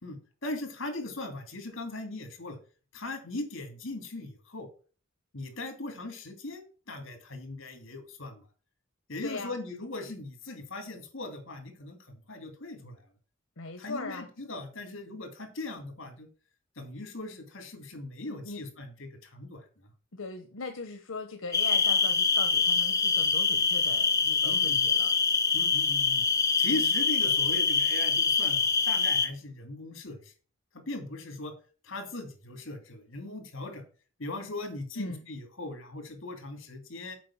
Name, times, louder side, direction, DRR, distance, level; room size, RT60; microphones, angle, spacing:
voice 1, 0.0-2.6 2.9-4.7 5.3-8.4 9.1-13.0 13.8-16.3 16.8-19.6 24.4-24.8 25.5-26.3 26.6-28.6 28.8-30.3 30.7-31.5 31.8-33.8 34.2-37.2, left 2 dB, 70° left, 6 dB, 2.7 m, -39 dB
voice 2, 9.2-9.6 13.6-14.3 18.3-18.6 20.1-25.2 35.0-35.2, left 3 dB, 85° left, 6 dB, 1.1 m, -40 dB
sound 1, 21.5-29.3, left 5 dB, 15° left, 0.9 m, -25 dB
7.6 x 5.3 x 7.2 m, 0.38 s
head